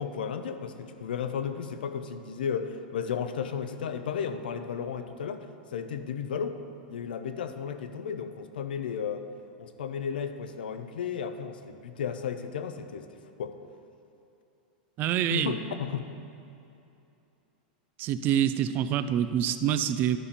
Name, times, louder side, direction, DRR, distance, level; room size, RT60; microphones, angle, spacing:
voice 1, 0.0-5.5 5.7-6.6 6.9-9.2 9.6-13.1 13.4-13.6 15.3-16.1, left 7 dB, 85° left, 9 dB, 0.6 m, -34 dB
voice 2, 15.0-15.5 18.0-20.2, right 10 dB, 40° right, 12 dB, 0.4 m, -26 dB
12.0 x 5.2 x 4.3 m, 2.7 s
hypercardioid pair, 120°, 5 cm